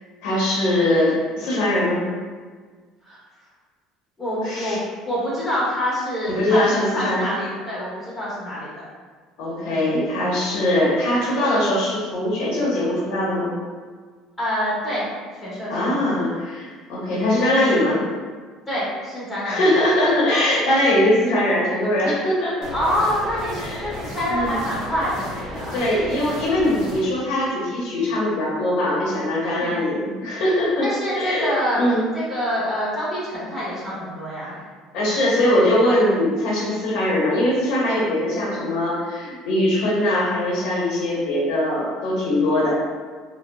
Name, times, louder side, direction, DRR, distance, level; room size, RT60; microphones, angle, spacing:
voice 1, 0.2-2.0 4.4-4.8 6.3-7.3 9.4-13.5 15.7-18.0 19.4-22.7 23.6-24.0 24.3-24.5 25.7-30.9 31.1-32.0 34.9-42.7, left 1 dB, 70° left, -6 dB, 0.8 m, -21 dB
voice 2, 4.2-8.8 14.4-15.1 15.4-16.1 18.7-19.6 22.7-25.8 29.5-29.8 30.8-31.8 32.1-34.6, equal, 10° left, -9 dB, 1.3 m, -26 dB
sound 1, 22.6-27.0, equal, 60° right, 0.7 m, -34 dB
3.6 x 2.1 x 2.2 m, 1.5 s
cardioid pair, 115°, 0 cm